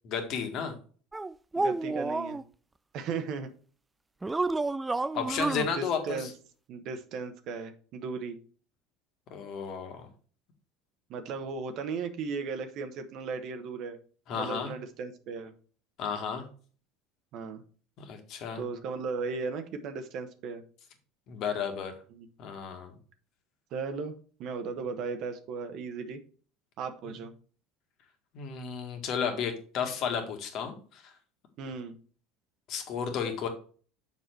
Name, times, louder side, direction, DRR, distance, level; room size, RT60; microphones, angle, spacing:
voice 1, 0.1-0.7 5.1-6.3 9.3-10.1 14.3-14.7 16.0-16.5 18.0-18.6 21.3-21.9 22.4-22.9 27.1-27.2 28.3-31.0 32.7-33.5, left 7 dB, 55° left, 5 dB, 1.8 m, -33 dB
sound 1, 1.1-2.4 4.2-5.7, right 3 dB, 15° right, 0.3 m, -30 dB
voice 2, 1.6-2.4 2.9-3.5 5.7-6.3 6.7-8.4 11.1-14.0 14.3-15.5 17.3-17.6 18.5-20.6 22.1-22.3 23.7-24.1 24.4-26.2 26.8-27.3 31.6-32.0, right 5 dB, 55° right, 7 dB, 1.0 m, -36 dB
6.9 x 4.8 x 4.5 m, 0.41 s
hypercardioid pair, 75°, 0 cm